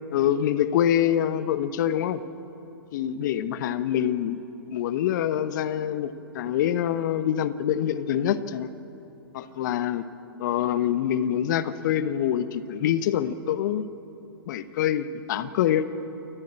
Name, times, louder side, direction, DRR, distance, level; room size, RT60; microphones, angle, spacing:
voice 1, 0.1-2.2 2.9-4.4 4.7-8.7 9.3-10.0 10.4-13.9 14.5-15.9, left 10 dB, 50° left, 13 dB, 1.0 m, -25 dB
28.5 x 13.5 x 8.9 m, 3.0 s
hypercardioid pair, 115°, 13 cm